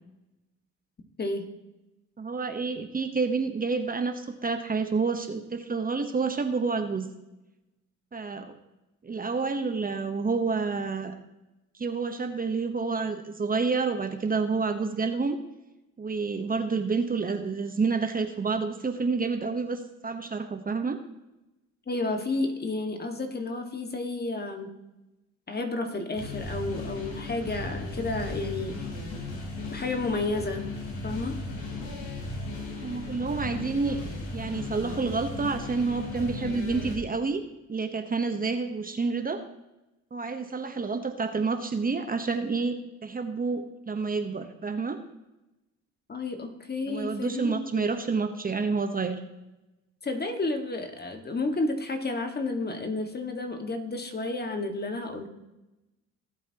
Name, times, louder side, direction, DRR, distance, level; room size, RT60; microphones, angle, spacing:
voice 1, 1.2-1.5 21.9-24.7 25.5-28.8 29.7-30.7 31.0-31.4 46.1-47.9 50.0-55.3, left 2 dB, 30° left, 5 dB, 1.7 m, -31 dB
voice 2, 2.2-7.1 8.1-8.6 9.0-11.1 11.7-15.4 16.0-21.0 32.8-34.0 34.3-37.4 37.7-39.4 40.1-45.0 46.9-49.2, right 4 dB, 30° right, 7 dB, 1.0 m, -29 dB
sound 1, 26.1-36.9, left 2 dB, 80° left, 4.2 m, -36 dB
18.0 x 8.2 x 2.9 m, 0.99 s
cardioid pair, 90°, 30 cm